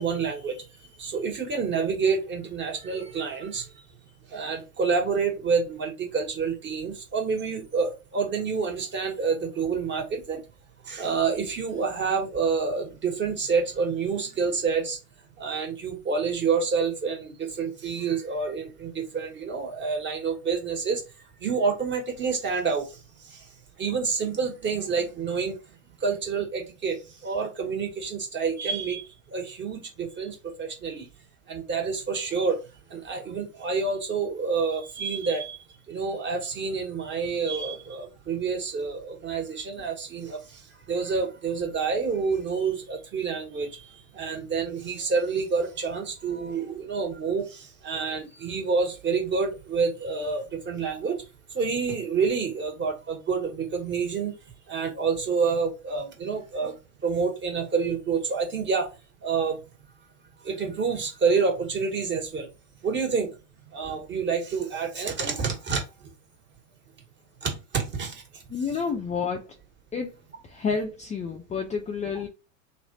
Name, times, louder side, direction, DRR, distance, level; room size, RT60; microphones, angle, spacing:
voice 1, 0.0-3.8 4.3-10.4 10.8-15.0 15.4-21.0 21.4-23.5 23.8-25.6 26.0-31.1 31.5-32.6 32.9-35.6 35.9-51.2 51.5-54.4 54.7-56.7 57.0-58.9 59.2-59.6 60.4-62.5 62.8-63.4 63.6-66.1 67.4-68.4, right 5 dB, 30° right, 1.6 m, -28 dB
voice 2, 68.5-69.6 69.9-70.2 70.4-72.3, left 5 dB, 20° left, 0.5 m, -30 dB
3.1 x 2.5 x 4.1 m
hypercardioid pair, 105°, 40 cm